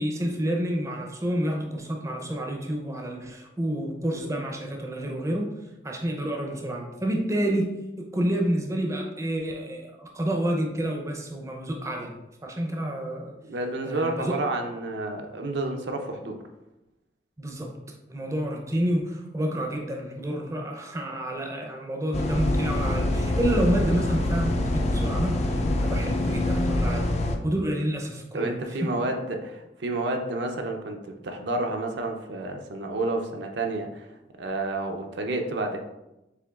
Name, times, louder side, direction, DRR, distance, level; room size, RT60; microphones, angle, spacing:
voice 1, 0.0-5.5 5.8-12.1 12.4-13.3 13.8-14.3 17.4-17.8 18.1-27.1 27.4-28.9, right 1 dB, 15° right, 1 dB, 0.5 m, -29 dB
voice 2, 13.5-16.4 28.3-34.1 34.4-35.8, right 2 dB, 65° right, 3 dB, 0.5 m, -30 dB
sound 1, 22.1-27.4, left 1 dB, 35° left, 0.4 m, -25 dB
6.8 x 2.8 x 2.3 m, 0.93 s
head